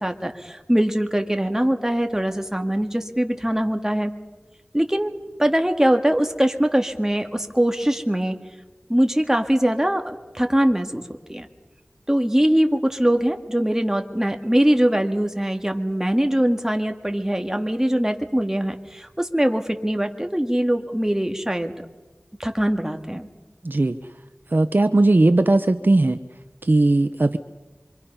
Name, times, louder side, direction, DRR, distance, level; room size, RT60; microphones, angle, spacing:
voice 1, 0.0-4.1 4.7-8.4 8.9-11.0 11.3-11.5 12.1-21.7 22.4-23.3, right 1 dB, 10° right, 5 dB, 2.0 m, -22 dB
voice 2, 23.6-24.0 24.5-26.2 26.6-27.4, right 2 dB, 55° right, 10 dB, 0.8 m, -18 dB
26.0 x 25.0 x 5.6 m, 1.2 s
wide cardioid pair, 40°, 4 cm